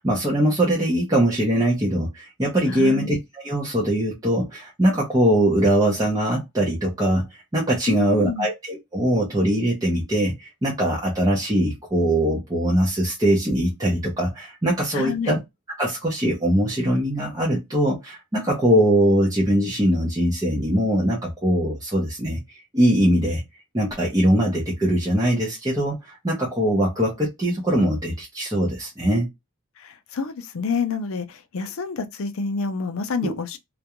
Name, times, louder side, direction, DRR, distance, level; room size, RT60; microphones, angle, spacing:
voice 1, 0.0-3.2 3.4-15.4 15.8-23.4 23.7-29.3 33.2-33.3, right 1 dB, 15° right, 0.6 m, -22 dB
voice 2, 2.7-3.1 7.9-8.5 14.9-15.4 29.8-33.6, left 4 dB, 70° left, 0.5 m, -28 dB
2.4 x 2.2 x 2.8 m
head